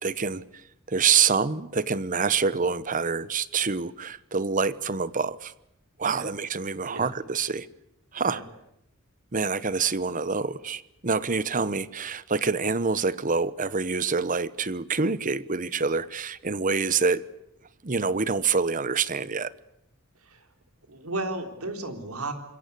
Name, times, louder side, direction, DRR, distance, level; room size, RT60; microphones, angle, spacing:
voice 1, 0.0-5.5 6.0-7.7 8.1-8.4 9.3-17.2 17.8-19.5, right 5 dB, 40° right, 1.0 m, -26 dB
voice 2, 20.9-22.3, right 2 dB, 90° right, 3.9 m, -34 dB
26.5 x 22.5 x 8.4 m
head